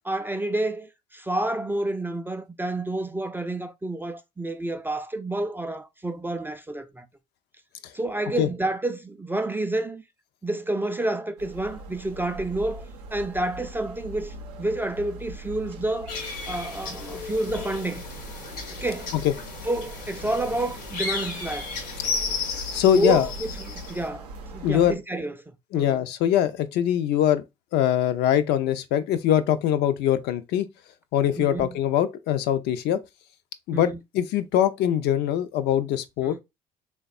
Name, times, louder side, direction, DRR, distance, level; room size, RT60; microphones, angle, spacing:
voice 1, 0.0-7.1 7.9-10.0 10.4-12.9 13.1-16.1 16.5-18.0 18.7-19.1 19.6-21.7 22.7-24.3 24.5-25.4 25.7-26.0 31.4-31.8 33.7-34.0 36.2-36.4, right 2 dB, 10° right, 0.3 m, -29 dB
sound 1, 11.4-25.0, right 1 dB, 80° right, 0.5 m, -41 dB
sound 2, 16.1-24.1, left 4 dB, 80° left, 0.9 m, -34 dB
voice 2, 22.7-23.3 24.6-24.9 25.7-27.4 27.7-30.7 31.1-33.0 33.7-33.9 34.1-36.4, left 10 dB, 60° left, 0.4 m, -22 dB
3.3 x 2.1 x 2.4 m
hypercardioid pair, 60°, 20 cm